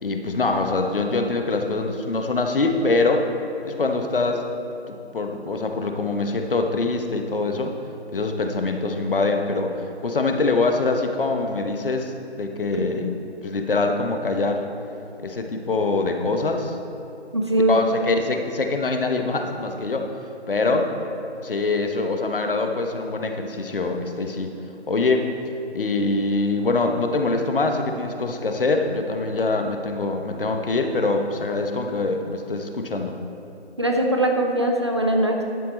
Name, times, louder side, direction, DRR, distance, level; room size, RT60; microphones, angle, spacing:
voice 1, 0.0-3.3 3.6-4.4 4.9-7.7 8.1-9.8 10.0-13.1 13.4-14.6 15.2-16.8 17.7-20.1 20.5-20.9 21.4-24.6 24.9-25.3 25.7-33.2, left 3 dB, 55° left, 5 dB, 1.0 m, -24 dB
voice 2, 17.3-17.8 20.7-20.8 33.8-35.4, right 1 dB, 25° right, 1 dB, 0.6 m, -21 dB
12.0 x 7.6 x 4.2 m, 2.8 s
figure-of-eight pair, 160°, 33 cm